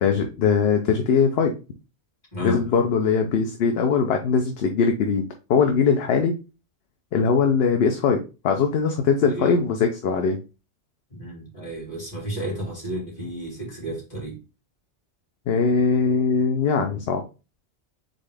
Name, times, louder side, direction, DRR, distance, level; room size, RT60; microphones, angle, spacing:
voice 1, 0.0-1.5 2.4-6.4 7.1-10.4 15.5-17.2, left 5 dB, 65° left, 5 dB, 0.8 m, -21 dB
voice 2, 2.3-2.6 9.2-9.6 11.1-14.4, equal, 40° left, -4 dB, 2.6 m, -32 dB
4.0 x 3.7 x 3.3 m, 0.31 s
omnidirectional pair, 1.2 m